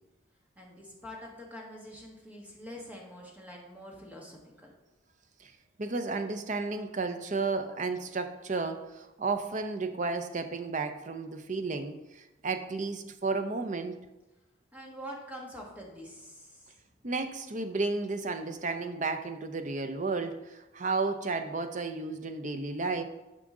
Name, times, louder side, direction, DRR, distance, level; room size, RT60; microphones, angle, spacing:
voice 1, 0.6-4.7 14.7-16.7, equal, 5° right, -2 dB, 1.5 m, -45 dB
voice 2, 5.8-14.0 17.0-23.0, right 3 dB, 35° right, 8 dB, 0.6 m, -33 dB
11.5 x 5.1 x 3.8 m, 1.1 s
head